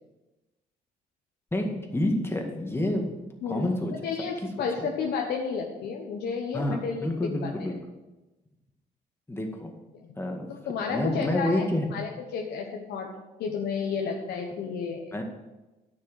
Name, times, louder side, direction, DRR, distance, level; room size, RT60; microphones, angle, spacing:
voice 1, 1.5-4.0 4.8-4.9 6.5-7.8 9.3-9.7 10.2-10.5 10.9-11.9 15.1-15.2, left 1 dB, 15° left, 2 dB, 2.0 m, -28 dB
voice 2, 4.0-7.1 7.4-7.5 9.9-10.1 10.5-11.6 11.9-13.1 13.4-15.1, left 5 dB, 80° left, 1 dB, 1.1 m, -31 dB
9.8 x 6.7 x 6.4 m, 1.1 s
cardioid pair, 85°, 17 cm